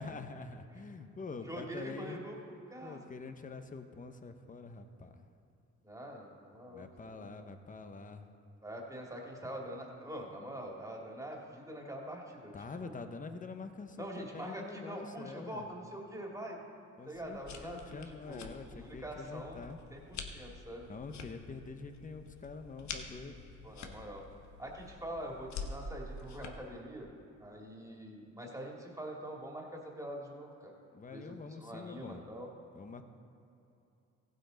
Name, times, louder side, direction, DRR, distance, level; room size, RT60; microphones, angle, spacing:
voice 1, 0.0-2.2 2.8-5.3 6.7-8.3 12.5-15.7 17.0-19.8 20.9-23.5 30.9-32.2 32.7-33.0, left 4 dB, 25° left, 8 dB, 0.9 m, -46 dB
voice 2, 1.5-3.0 5.8-7.3 8.6-12.5 12.8-13.0 14.0-16.6 17.1-19.6 19.9-20.9 23.6-24.3 24.6-27.1 27.4-30.7 31.1-32.5, right 1 dB, 10° right, -1 dB, 2.3 m, -44 dB
sound 1, 17.1-26.5, left 4 dB, 65° left, 1.2 m, -47 dB
15.5 x 9.2 x 4.0 m, 2.8 s
cardioid pair, 90°, 30 cm